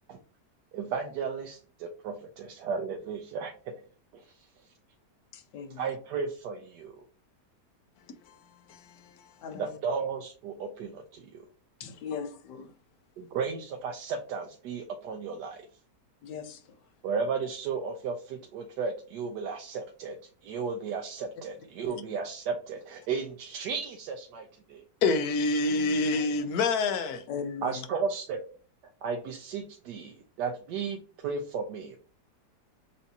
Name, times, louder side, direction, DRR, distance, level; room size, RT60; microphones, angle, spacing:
voice 1, 0.7-3.8 4.1-4.3 5.8-7.0 9.6-11.5 13.2-15.7 17.0-20.2 20.4-24.8 27.6-28.5 29.0-32.0, right 5 dB, 80° right, 1.2 m, -34 dB
voice 2, 5.3-5.9 9.4-9.8 11.8-12.7 16.2-16.7 21.9-22.0 27.3-27.9, left 6 dB, 90° left, 1.4 m, -39 dB
voice 3, 25.0-27.2, left 3 dB, 70° left, 1.0 m, -26 dB
7.0 x 2.6 x 2.7 m
omnidirectional pair, 1.8 m